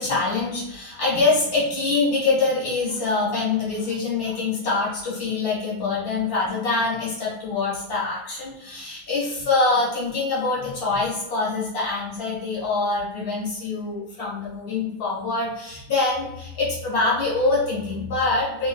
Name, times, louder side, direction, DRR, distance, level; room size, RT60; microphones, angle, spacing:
voice 1, 0.0-18.7, left 3 dB, 70° left, -6 dB, 2.1 m, -24 dB
3.4 x 3.2 x 2.4 m, 0.89 s
omnidirectional pair, 1.6 m